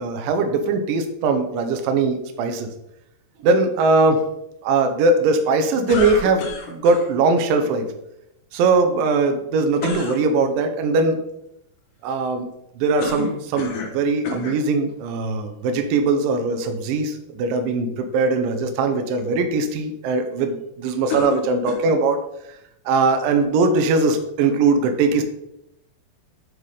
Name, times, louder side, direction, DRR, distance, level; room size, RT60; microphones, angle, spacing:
voice 1, 0.0-2.7 3.4-4.3 4.6-7.9 8.5-11.2 12.0-12.5 12.8-22.2 22.9-25.2, right 3 dB, 75° right, 6 dB, 2.2 m, -20 dB
sound 1, 5.9-7.1 9.8-10.2 13.0-14.0 14.3-14.6 15.4-15.5 21.1-22.0, left 4 dB, 85° left, 3.4 m, -30 dB
9.0 x 3.7 x 4.8 m, 0.81 s
omnidirectional pair, 4.7 m